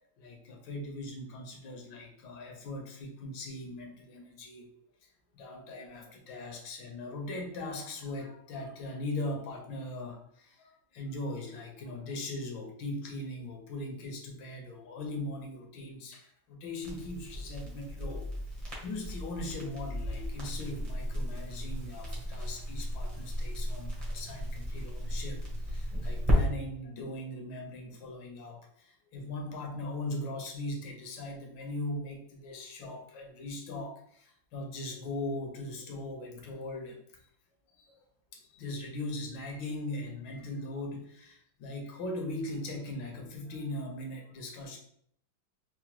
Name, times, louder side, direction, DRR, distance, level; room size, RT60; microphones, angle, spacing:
voice 1, 0.0-4.7 5.3-18.3 18.8-37.0 37.8-38.0 38.3-44.8, left 2 dB, 80° left, 1 dB, 1.5 m, -40 dB
Crackle, 16.8-26.4, equal, 25° right, 0.7 m, -34 dB
4.7 x 2.1 x 2.9 m, 0.66 s
omnidirectional pair, 2.1 m